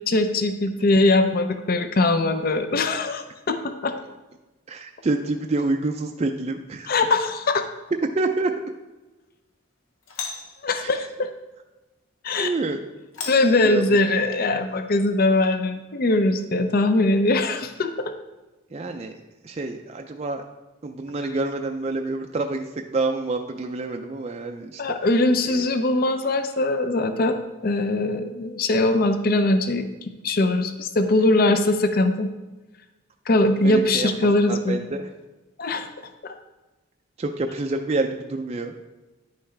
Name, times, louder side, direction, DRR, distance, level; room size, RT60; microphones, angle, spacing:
voice 1, 0.0-3.9 6.8-7.7 10.6-11.3 12.2-12.5 13.3-18.1 24.8-27.4 27.6-29.8 30.2-32.3 33.3-34.8 35.6-35.9 36.2-36.3, left 2 dB, 45° left, 8 dB, 0.5 m, -21 dB
voice 2, 4.7-6.9 8.2-8.5 10.8-10.9 12.4-12.8 13.6-13.8 18.7-19.1 19.4-20.4 20.8-22.6 22.9-24.8 25.5-25.6 33.6-34.1 34.5-35.0 37.2-38.7, right 2 dB, 30° right, 4 dB, 0.4 m, -27 dB
Doorbell, 7.0-7.5 10.0-10.7 13.1-14.3, left 5 dB, 85° left, 1.0 m, -37 dB
9.9 x 5.7 x 3.3 m, 1.1 s
head